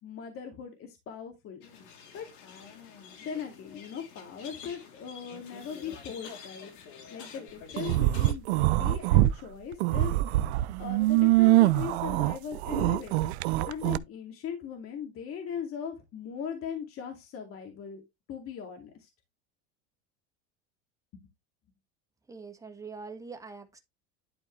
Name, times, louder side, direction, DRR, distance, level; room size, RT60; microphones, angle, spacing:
voice 1, 0.0-1.6 2.1-2.3 3.2-6.7 7.1-10.2 10.8-13.2 13.7-18.0 18.3-19.1 21.1-21.2, left 7 dB, 40° left, 2.4 m, -39 dB
sound 1, 1.6-8.3, left 6 dB, 60° left, 3.2 m, -48 dB
sound 2, 7.8-9.3 9.7-14.0, right 17 dB, 80° right, 0.6 m, -24 dB
voice 2, 22.3-23.8, right 4 dB, 10° right, 1.6 m, -43 dB
11.5 x 4.5 x 3.2 m
supercardioid pair, 105°, 33 cm